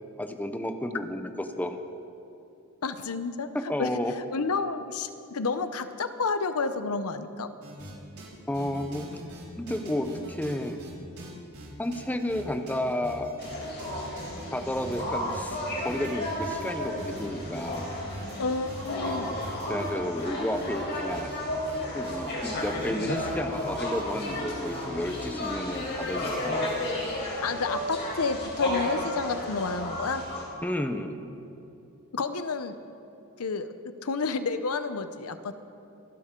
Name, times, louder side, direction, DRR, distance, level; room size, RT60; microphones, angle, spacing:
voice 1, 0.2-1.3 1.6-1.8 3.5-4.1 8.5-9.1 9.6-10.8 11.8-13.3 14.5-17.9 18.9-19.3 19.7-21.3 21.9-26.7 27.3-27.4 30.6-31.1, left 1 dB, 5° left, 6 dB, 0.8 m, -32 dB
voice 2, 2.8-3.5 3.8-3.9 4.3-7.5 18.4-19.3 27.4-30.2 32.1-32.8 33.4-35.6, left 4 dB, 80° left, 11 dB, 0.7 m, -30 dB
sound 1, 7.6-8.3 8.5-10.9 11.2-20.3 20.5-21.4 21.7-22.9 23.2-24.4 24.7-25.5, equal, 75° right, 4.7 m, -43 dB
sound 2, 13.4-30.4, left 1 dB, 50° left, 4.2 m, -33 dB
27.0 x 12.0 x 3.8 m, 2.8 s
head